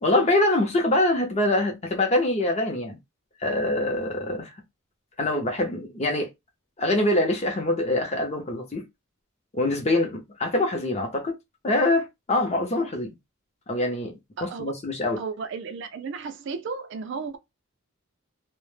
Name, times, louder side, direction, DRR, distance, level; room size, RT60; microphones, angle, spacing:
voice 1, 0.0-3.0 3.4-4.5 5.2-6.3 6.8-8.8 9.5-11.3 11.6-13.1 13.7-15.2, left 1 dB, 30° left, 0.6 m, -24 dB
voice 2, 14.4-14.7 15.2-17.4, right 5 dB, 60° right, 0.4 m, -34 dB
2.1 x 2.0 x 3.1 m
head